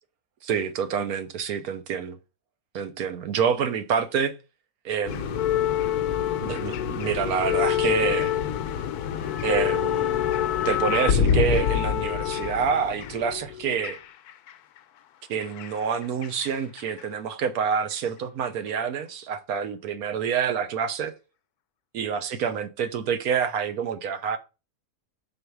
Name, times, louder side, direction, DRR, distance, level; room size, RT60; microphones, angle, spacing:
voice 1, 0.4-2.2 2.7-4.4 4.8-5.6 6.4-8.3 9.4-10.3 10.6-14.0 15.3-21.1 21.9-24.4, right 7 dB, 80° right, 1.2 m, -27 dB
sound 1, 5.1-14.5 15.4-16.5 16.8-17.0 17.9-18.0, left 9 dB, 85° left, 1.1 m, -26 dB
5.5 x 4.0 x 4.6 m
omnidirectional pair, 1.6 m